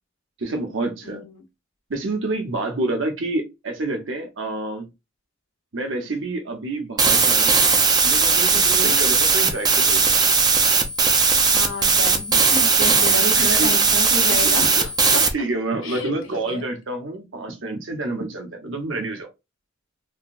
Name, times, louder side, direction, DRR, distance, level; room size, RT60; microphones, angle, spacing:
voice 1, 0.4-1.2 1.9-4.9 5.7-7.6 8.0-10.1 13.3-13.7 14.4-14.5 15.3-19.3, right 2 dB, 65° right, 0.9 m, -28 dB
sound 1, 7.0-15.3, right 5 dB, 20° right, 0.5 m, -18 dB
voice 2, 8.5-9.0 11.5-15.2 15.8-16.6, left 2 dB, 75° left, 0.9 m, -30 dB
3.6 x 2.2 x 2.5 m
head